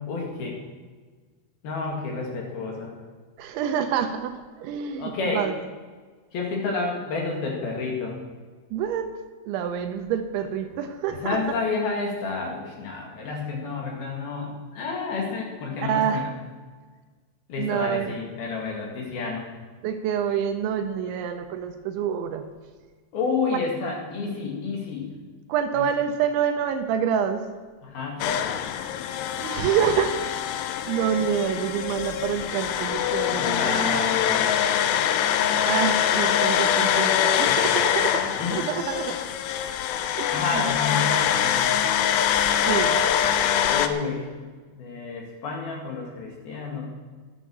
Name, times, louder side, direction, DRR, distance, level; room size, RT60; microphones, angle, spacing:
voice 1, 0.1-0.6 1.6-3.0 5.0-5.5 6.3-8.2 11.1-16.3 17.5-19.5 23.1-25.1 25.7-25.8 27.8-28.5 33.3-34.5 37.5-38.6 40.3-41.7 43.7-44.3 44.8-46.9, left 4 dB, 55° left, 0 dB, 3.4 m, -30 dB
voice 2, 3.4-5.6 8.7-9.1 9.5-11.6 15.9-16.2 17.6-18.1 19.8-22.4 25.5-27.4 29.4-30.1 30.9-34.0 35.6-39.2 40.2-40.7 42.5-43.0, right 8 dB, 80° right, 7 dB, 3.0 m, -27 dB
sound 1, 28.2-43.9, left 9 dB, 85° left, 2.4 m, -24 dB
12.5 x 9.3 x 7.4 m, 1.4 s
omnidirectional pair, 5.7 m